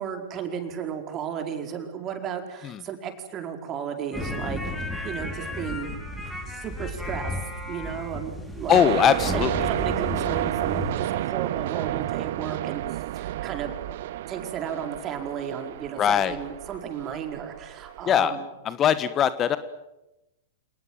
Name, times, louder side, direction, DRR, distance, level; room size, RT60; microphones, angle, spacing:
voice 1, 0.0-5.9 6.5-7.4 7.7-8.8 9.1-13.7 14.3-18.4, right 8 dB, 30° right, 5 dB, 4.9 m, -34 dB
sound 1, 4.1-10.9, left 1 dB, 5° left, 6.0 m, -33 dB
voice 2, 8.7-9.7 16.0-16.3 18.1-18.4 18.6-19.6, left 9 dB, 30° left, 14 dB, 1.3 m, -21 dB
sound 2, 8.7-18.3, right 14 dB, 55° right, 1.0 m, -31 dB
28.5 x 19.5 x 9.1 m, 0.95 s
figure-of-eight pair, 100°, 0 cm